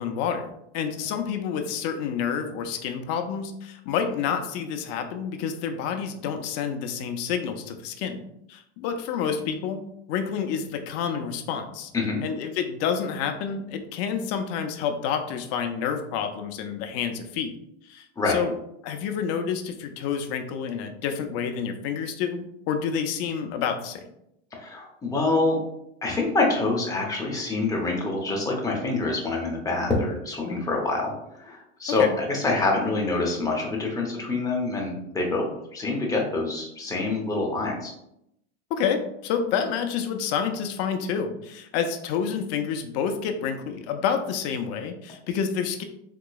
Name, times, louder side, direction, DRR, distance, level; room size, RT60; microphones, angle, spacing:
voice 1, 0.0-8.2 8.5-9.8 10.1-11.9 12.2-17.5 17.8-18.5 18.8-24.1 32.0-32.2 38.7-45.8, left 7 dB, 45° left, 6 dB, 0.5 m, -29 dB
voice 2, 24.5-25.6 26.0-37.9, left 3 dB, 10° left, -1 dB, 0.8 m, -26 dB
3.8 x 2.8 x 2.3 m, 0.79 s
supercardioid pair, 125°, 35 cm